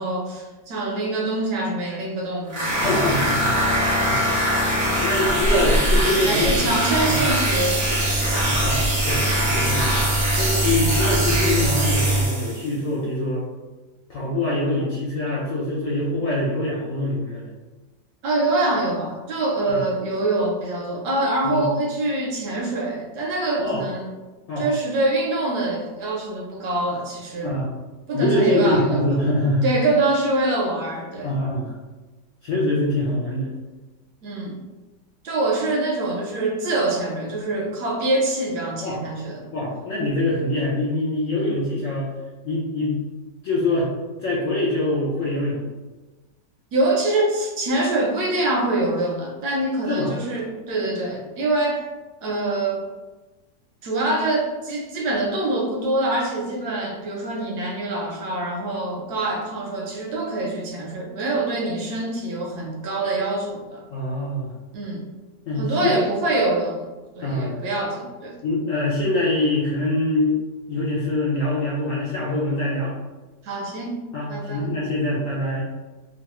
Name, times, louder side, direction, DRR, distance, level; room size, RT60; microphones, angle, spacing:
voice 1, 0.0-2.9 4.1-4.3 5.5-5.6 6.1-8.5 18.2-24.1 24.6-27.6 28.1-29.1 29.6-31.3 34.2-34.6 35.2-39.5 46.7-51.8 52.2-52.8 53.8-63.8 64.7-65.1 65.6-66.9 67.2-68.4 73.4-74.0 74.3-74.6, right 2 dB, 70° right, 0 dB, 1.0 m, -25 dB
sound 1, 2.5-12.7, equal, 50° right, 0.6 m, -23 dB
voice 2, 2.8-3.6 4.1-4.3 5.0-6.7 7.1-7.3 8.4-10.1 10.4-13.4 14.1-17.5 19.7-19.8 21.4-21.7 23.6-23.8 24.5-24.6 27.4-27.7 28.1-29.7 31.2-31.7 32.4-33.5 38.8-39.0 39.5-42.1 42.4-43.0 43.4-43.9 44.2-45.6 49.9-50.1 63.9-64.5 65.5-66.0 67.2-67.5 68.4-70.4 70.7-72.9 74.1-75.6, left 1 dB, 70° left, -6 dB, 0.8 m, -24 dB
sound 2, 5.2-12.3, right 2 dB, 15° left, 0.8 m, -24 dB
3.0 x 2.3 x 2.8 m, 1.2 s
omnidirectional pair, 1.9 m